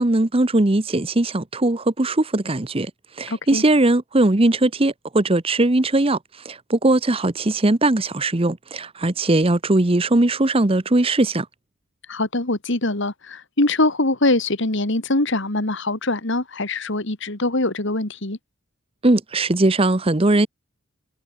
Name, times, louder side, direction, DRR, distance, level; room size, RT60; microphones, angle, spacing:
voice 1, 0.0-2.9 3.2-6.2 6.4-11.5 19.0-20.5, right 2 dB, 25° right, 0.9 m, -19 dB
voice 2, 3.3-3.6 12.1-18.4, left 2 dB, 60° left, 2.4 m, -23 dB
head